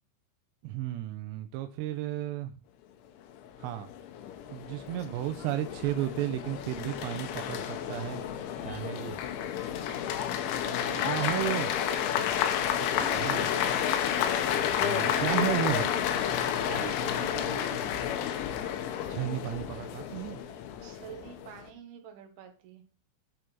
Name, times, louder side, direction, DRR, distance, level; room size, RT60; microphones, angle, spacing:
voice 1, 0.6-2.5 3.6-3.9 4.5-8.2 8.6-9.2 11.0-11.7 13.2-13.5 14.8-15.9 19.1-20.4, right 13 dB, 85° right, 8 dB, 2.5 m, -33 dB
sound 1, 3.4-21.7, left 9 dB, 80° left, 3.3 m, -31 dB
voice 2, 10.6-12.4 12.7-14.3 14.9-16.0 16.6-17.9 20.8-22.8, right 8 dB, 65° right, 5 dB, 3.0 m, -45 dB
11.0 x 4.8 x 4.5 m, 0.37 s
omnidirectional pair, 5.5 m